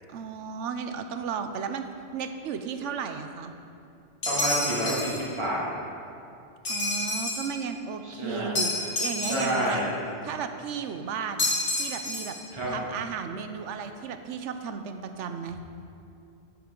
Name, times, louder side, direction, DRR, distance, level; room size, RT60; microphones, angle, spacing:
voice 1, 0.1-1.9 2.1-3.5 6.7-9.8 10.2-11.5 11.8-12.4 12.7-15.6, right 6 dB, 90° right, 8 dB, 1.0 m, -34 dB
sound 1, 4.2-5.2 6.7-7.5 8.6-9.7 11.4-12.4, left 2 dB, 80° left, 2.4 m, -29 dB
voice 2, 4.2-5.6 8.0-8.9 9.2-9.9 12.5-12.7, equal, 25° right, -7 dB, 2.5 m, -29 dB
10.5 x 9.6 x 3.8 m, 2.6 s
omnidirectional pair, 1.2 m